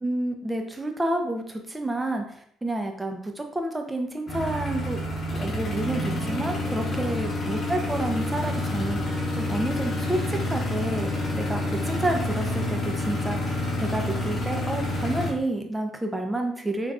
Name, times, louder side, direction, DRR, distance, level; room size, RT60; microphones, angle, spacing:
voice 1, 0.0-5.0 5.3-16.9, right 1 dB, 15° right, 4 dB, 0.6 m, -30 dB
sound 1, 4.3-15.3, left 1 dB, 45° left, 0.9 m, -28 dB
3.6 x 3.0 x 2.4 m, 0.64 s
hypercardioid pair, 55°, 0 cm